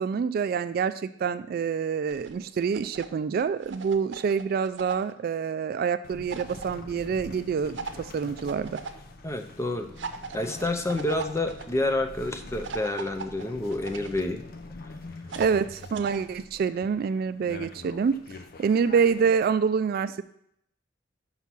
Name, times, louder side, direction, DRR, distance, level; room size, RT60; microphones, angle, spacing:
voice 1, 0.0-8.8 15.4-18.2 18.6-20.2, right 6 dB, 55° right, 14 dB, 0.3 m, -26 dB
sound 1, 2.1-3.1 3.4-5.1 6.3-6.7 7.7-8.9 10.0-11.6 12.6-14.2 15.3-16.2, right 4 dB, 85° right, 0.7 m, -39 dB
sound 2, 6.0-19.4, left 2 dB, 55° left, 0.6 m, -45 dB
voice 2, 9.2-9.9 10.3-14.4, left 2 dB, 15° left, 6 dB, 0.6 m, -28 dB
5.8 x 5.6 x 6.0 m, 0.71 s
head